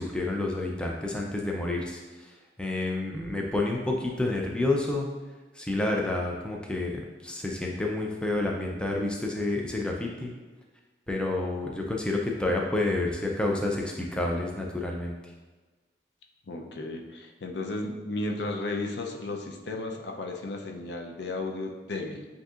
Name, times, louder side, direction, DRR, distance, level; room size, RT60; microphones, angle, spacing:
voice 1, 0.0-2.3 2.6-5.1 5.6-10.3 11.1-15.2, left 2 dB, 5° left, -1 dB, 0.4 m, -29 dB
voice 2, 16.5-22.3, left 2 dB, 75° left, 2 dB, 0.5 m, -34 dB
7.8 x 2.7 x 2.4 m, 1.3 s
head